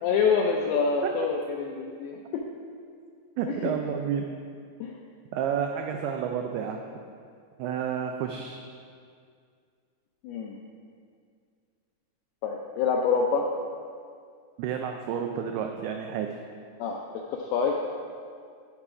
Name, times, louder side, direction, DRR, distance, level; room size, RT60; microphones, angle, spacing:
voice 1, 0.0-2.5 3.5-3.7 4.8-5.0 10.2-10.6 12.4-13.5 16.8-17.0 17.3-17.8, left 5 dB, 85° left, 1 dB, 2.3 m, -26 dB
voice 2, 3.4-4.3 5.3-6.8 7.6-8.6 14.6-16.3, right 8 dB, 90° right, 4 dB, 2.3 m, -30 dB
14.0 x 4.9 x 4.8 m, 2.2 s
omnidirectional pair, 5.2 m